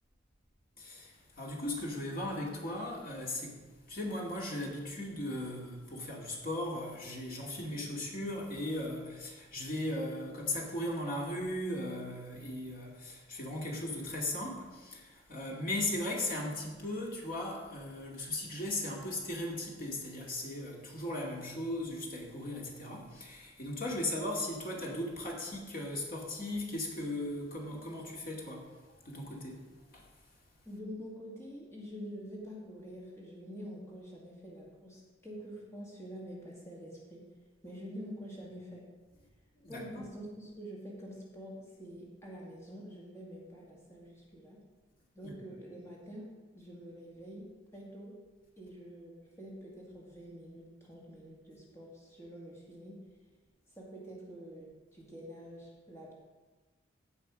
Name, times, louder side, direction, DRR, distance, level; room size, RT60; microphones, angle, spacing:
voice 1, 0.8-28.7 29.0-29.7 29.9-30.1 39.6-40.0 45.2-45.3, left 1 dB, 50° left, -2 dB, 2.4 m, -37 dB
voice 2, 30.6-37.2 37.6-38.8 39.7-44.6 45.1-48.1 48.6-53.0 53.7-56.2, equal, 15° left, -4 dB, 2.2 m, -47 dB
16.0 x 5.5 x 5.1 m, 1.3 s
head